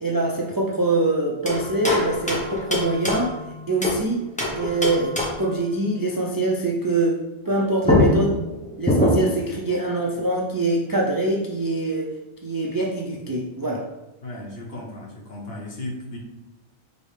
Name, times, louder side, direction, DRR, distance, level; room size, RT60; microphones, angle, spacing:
voice 1, 0.0-3.3 3.7-4.3 4.6-8.4 8.8-12.1 12.4-13.9, right 2 dB, 35° right, -1 dB, 0.3 m, -24 dB
sound 1, 1.4-4.0 4.4-5.5 7.5-7.6 7.8-9.5, left 1 dB, 10° left, 0.7 m, -23 dB
voice 2, 14.2-16.2, left 1 dB, 65° left, -2 dB, 1.3 m, -35 dB
5.2 x 3.1 x 3.2 m, 0.99 s
omnidirectional pair, 1.1 m